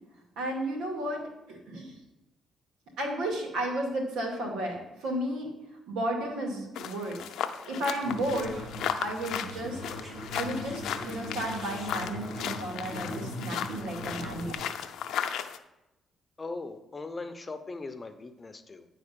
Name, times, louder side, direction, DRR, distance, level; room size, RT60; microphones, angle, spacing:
voice 1, 0.4-1.2 1.5-1.9 3.0-5.5 5.9-7.2 7.7-8.7 9.0-9.8 10.1-14.7, right 1 dB, 90° right, 0 dB, 2.3 m, -33 dB
sound 1, 6.8-15.6, left 9 dB, 80° left, 0.5 m, -36 dB
sound 2, 8.0-14.5, equal, 30° right, 2.8 m, -40 dB
voice 2, 16.4-18.9, left 3 dB, 25° left, 8 dB, 0.8 m, -39 dB
9.7 x 4.1 x 6.8 m, 0.96 s
cardioid pair, 90°, 0 cm